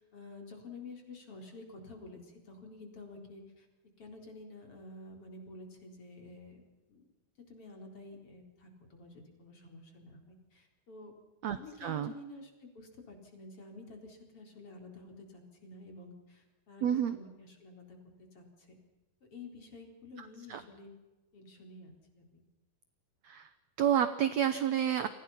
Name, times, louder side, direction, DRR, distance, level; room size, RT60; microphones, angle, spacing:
voice 1, 0.0-3.7 4.0-6.6 6.9-7.1 7.5-11.1 11.5-18.8 19.3-20.9 21.3-22.4, left 2 dB, 35° left, 3 dB, 4.9 m, -50 dB
voice 2, 11.4-12.1 16.8-17.2 20.2-20.6 23.2-23.5 23.8-25.1, right 9 dB, 70° right, 12 dB, 1.7 m, -30 dB
30.0 x 25.0 x 5.8 m, 1.1 s
omnidirectional pair, 4.3 m